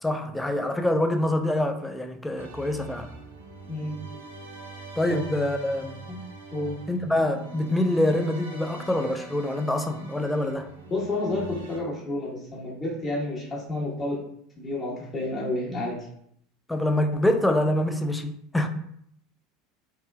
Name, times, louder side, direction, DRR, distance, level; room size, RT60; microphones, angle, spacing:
voice 1, 0.0-3.1 5.0-6.0 6.9-10.7 16.7-18.7, left 1 dB, 10° left, 6 dB, 0.3 m, -25 dB
sound 1, 2.4-11.8, right 2 dB, 90° right, 0.5 m, -43 dB
voice 2, 10.9-14.2 14.6-16.0, left 2 dB, 30° left, -5 dB, 1.2 m, -30 dB
2.9 x 2.3 x 2.2 m, 0.69 s
hypercardioid pair, 80°, 0 cm